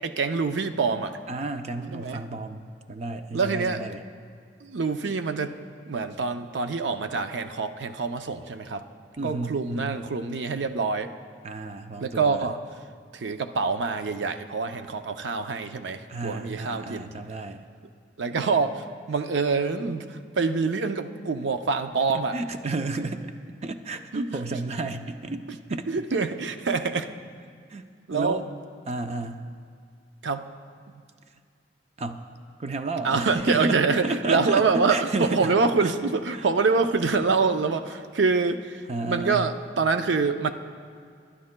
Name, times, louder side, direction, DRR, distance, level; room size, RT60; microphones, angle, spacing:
voice 1, 0.0-1.2 1.9-2.2 3.3-3.8 4.6-5.6 5.9-8.8 9.2-11.1 12.0-12.6 13.1-17.1 18.2-22.4 24.1-24.3 25.9-27.1 28.1-28.4 30.2-30.5 30.9-31.0 33.0-40.5, right 4 dB, 80° right, 8 dB, 0.6 m, -26 dB
voice 2, 1.3-4.0 9.2-9.9 11.4-12.5 16.1-17.6 22.1-23.3 23.6-25.9 27.7-28.5 28.9-29.5 32.0-32.2 32.6-35.6 35.8-35.9 36.3-36.5 38.9-39.5, right 3 dB, 35° right, 7 dB, 0.5 m, -32 dB
27.5 x 11.5 x 2.2 m, 2.1 s
head